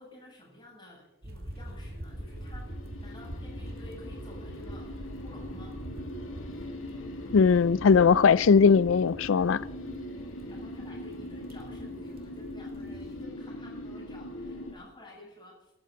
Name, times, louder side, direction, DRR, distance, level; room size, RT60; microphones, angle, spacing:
voice 1, 0.0-4.9 5.2-5.8 9.3-9.5 10.5-15.7, left 1 dB, 25° left, 7.6 m, -51 dB
sound 1, 1.2-13.2, right 1 dB, 50° right, 1.7 m, -44 dB
sound 2, 1.5-14.7, left 1 dB, 85° left, 2.5 m, -41 dB
voice 2, 7.3-9.6, left 5 dB, 70° left, 0.4 m, -20 dB
23.5 x 12.5 x 3.9 m
head